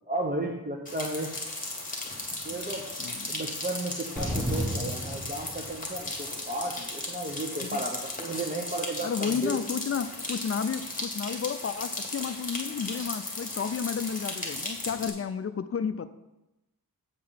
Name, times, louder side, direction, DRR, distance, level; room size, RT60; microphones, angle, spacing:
voice 1, 0.1-1.3 2.4-2.8 3.3-9.6, right 2 dB, 25° right, 0 dB, 1.0 m, -34 dB
sound 1, 0.9-15.1, left 2 dB, 20° left, 1.9 m, -36 dB
voice 2, 3.0-3.4 7.6-7.9 9.0-16.1, left 6 dB, 40° left, 12 dB, 0.4 m, -32 dB
sound 2, 4.2-6.1, right 1 dB, ahead, 1.1 m, -32 dB
8.2 x 4.8 x 5.8 m, 0.97 s
wide cardioid pair, 120°, 36 cm